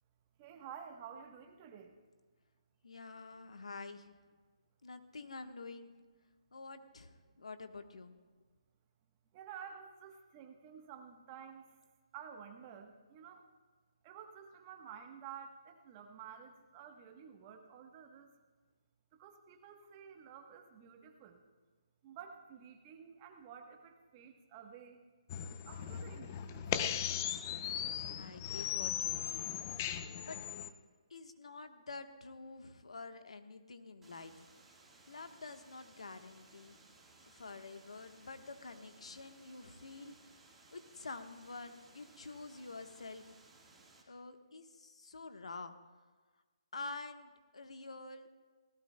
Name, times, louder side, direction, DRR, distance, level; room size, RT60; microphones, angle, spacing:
voice 1, 0.4-1.9 9.3-11.6 12.1-13.4 14.0-18.3 19.1-21.4 22.0-25.0 25.7-27.3, right 7 dB, 25° right, 5 dB, 1.0 m, -52 dB
voice 2, 2.8-4.1 4.8-5.9 6.5-8.1 28.2-29.6 30.2-30.4 31.1-34.3 35.1-36.8 37.3-40.2 40.7-43.3 44.1-45.7 46.7-48.3, left 3 dB, 90° left, 7 dB, 1.2 m, -48 dB
sound 1, 25.3-30.7, left 10 dB, 25° left, 0.5 m, -38 dB
sound 2, 34.0-44.0, right 3 dB, 5° right, 1.5 m, -62 dB
20.0 x 17.0 x 2.2 m, 1.4 s
hypercardioid pair, 165°, 3 cm